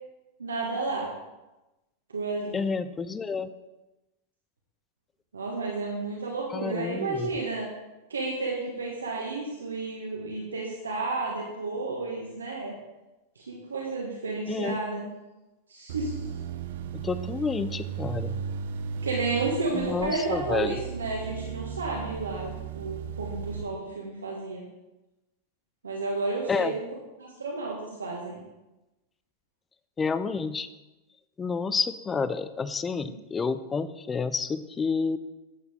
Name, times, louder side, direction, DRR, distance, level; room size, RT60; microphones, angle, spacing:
voice 1, 0.4-1.1 2.1-2.6 5.3-7.7 8.1-12.7 13.3-15.1 15.7-16.3 19.0-24.6 25.8-26.8 27.2-28.4, right 3 dB, 75° right, -2 dB, 1.5 m, -32 dB
voice 2, 2.5-3.5 6.5-7.3 14.5-14.8 16.9-18.4 19.7-20.8 26.5-26.7 30.0-30.7 31.4-35.2, left 5 dB, 20° left, 14 dB, 0.5 m, -29 dB
sound 1, 15.9-23.6, right 7 dB, 55° right, 0.7 m, -36 dB
11.0 x 8.0 x 3.6 m, 1.0 s
figure-of-eight pair, 90°, 0 cm